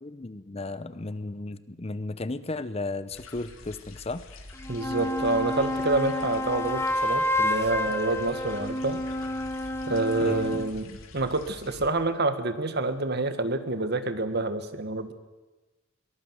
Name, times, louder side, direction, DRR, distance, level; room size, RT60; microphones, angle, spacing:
voice 1, 0.0-4.2 10.2-10.6, left 2 dB, 30° left, 14 dB, 0.7 m, -34 dB
sound 1, 3.1-11.9, left 2 dB, 85° left, 2.9 m, -46 dB
sound 2, 4.5-10.7, left 1 dB, 10° left, 1.1 m, -29 dB
voice 2, 4.7-9.0 9.9-15.1, right 2 dB, 50° right, 10 dB, 1.5 m, -27 dB
23.0 x 18.5 x 7.9 m, 1.2 s
head